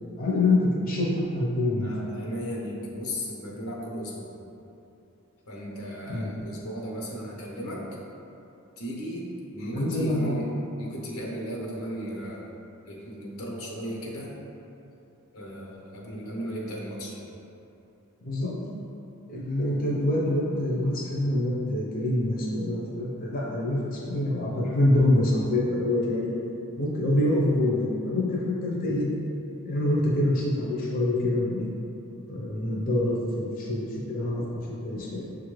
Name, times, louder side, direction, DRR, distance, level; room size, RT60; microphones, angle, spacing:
voice 1, 0.2-1.9 6.1-6.3 9.7-10.5 18.2-18.5 19.3-26.3 26.8-29.1 29.6-31.7 32.3-34.4 34.8-35.3, left 1 dB, 40° left, -5 dB, 0.6 m, -25 dB
voice 2, 1.8-4.4 5.5-7.8 8.8-9.3 9.5-10.5 10.8-12.5 12.8-14.3 15.3-17.3, equal, 85° left, -4 dB, 0.9 m, -35 dB
6.5 x 2.5 x 3.1 m, 2.8 s
head